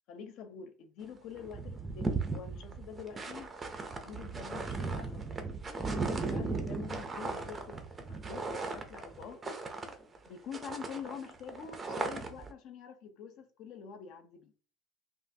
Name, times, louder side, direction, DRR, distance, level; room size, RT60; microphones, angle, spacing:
voice 1, 0.1-3.5 4.0-9.6 10.3-14.5, left 7 dB, 50° left, 0.6 m, -46 dB
sound 1, 1.0-1.1 1.4-10.3 10.5-12.5, right 3 dB, 15° right, 0.5 m, -37 dB
5.5 x 2.4 x 2.7 m
cardioid pair, 170°, 0 cm